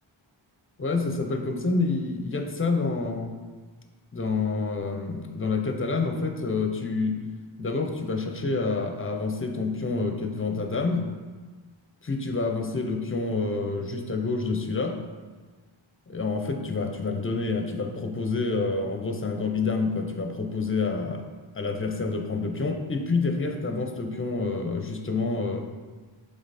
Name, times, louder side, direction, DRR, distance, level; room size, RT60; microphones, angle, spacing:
voice 1, 0.8-3.3 4.1-7.2 7.6-11.1 12.0-15.0 16.1-21.2 21.6-25.7, left 3 dB, 25° left, 5 dB, 0.7 m, -28 dB
6.9 x 3.7 x 4.2 m, 1.4 s
wide cardioid pair, 70°, 46 cm